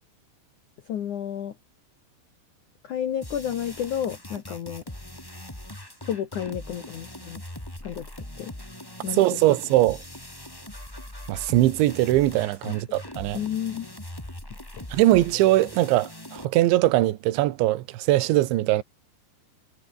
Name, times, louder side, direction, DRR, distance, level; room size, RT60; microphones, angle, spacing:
voice 1, 0.9-1.5 2.8-4.8 6.0-7.4 7.8-8.1 8.4-8.5 9.0-9.4 13.3-13.9 14.7-14.9, left 9 dB, 80° left, 1.7 m, -31 dB
sound 1, 3.2-16.4, left 1 dB, 5° left, 2.7 m, -41 dB
voice 2, 9.1-10.0 11.3-13.4 14.9-18.8, right 16 dB, 70° right, 3.5 m, -21 dB
omnidirectional pair, 6.0 m